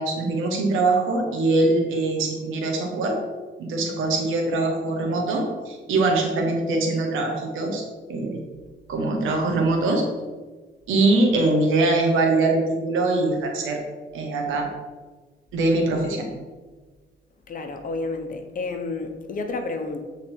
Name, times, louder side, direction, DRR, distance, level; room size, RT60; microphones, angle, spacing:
voice 1, 0.0-3.2 3.6-7.8 8.1-8.4 8.9-10.0 10.9-13.8 14.1-14.7 15.5-16.3, right 2 dB, 90° right, 2 dB, 1.3 m, -22 dB
voice 2, 17.5-20.0, left 3 dB, 45° left, 6 dB, 1.0 m, -30 dB
8.0 x 4.0 x 4.5 m, 1.4 s
cardioid pair, 90°, 20 cm